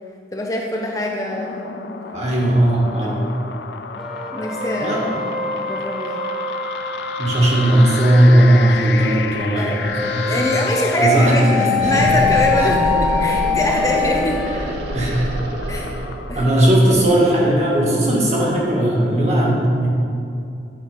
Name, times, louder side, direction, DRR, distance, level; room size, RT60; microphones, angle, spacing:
voice 1, 0.3-1.7 3.0-3.3 4.3-5.0 5.6-6.3 9.5-14.4 15.7-15.9 16.3-16.5, left 1 dB, 20° left, 0 dB, 0.5 m, -24 dB
sound 1, 1.1-17.4, left 4 dB, 80° left, 0.4 m, -31 dB
voice 2, 2.1-3.2 4.8-5.2 7.2-10.4 11.0-12.1 12.6-12.7 14.9-15.3 16.3-19.9, right 1 dB, 40° right, -4 dB, 1.6 m, -17 dB
sound 2, 4.0-14.6, left 3 dB, ahead, 0.9 m, -24 dB
sound 3, 9.3-9.4 9.7-18.5, right 1 dB, 75° right, 0.6 m, -29 dB
9.7 x 4.1 x 5.5 m, 2.6 s
head